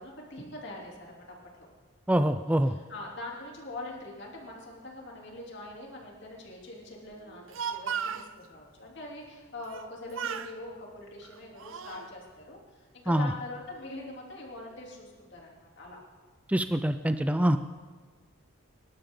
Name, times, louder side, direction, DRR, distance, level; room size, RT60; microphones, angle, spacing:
voice 1, 0.0-1.4 2.6-7.4 7.7-16.0, left 2 dB, 55° left, -2 dB, 3.2 m, -43 dB
voice 2, 2.1-2.8 13.1-13.3 16.5-17.6, right 1 dB, 5° right, 9 dB, 0.4 m, -25 dB
Speech, 7.3-8.3 9.6-9.9 10.1-10.5 11.2-12.1, right 7 dB, 70° right, 0.6 m, -35 dB
25.0 x 12.0 x 3.9 m, 1.4 s
head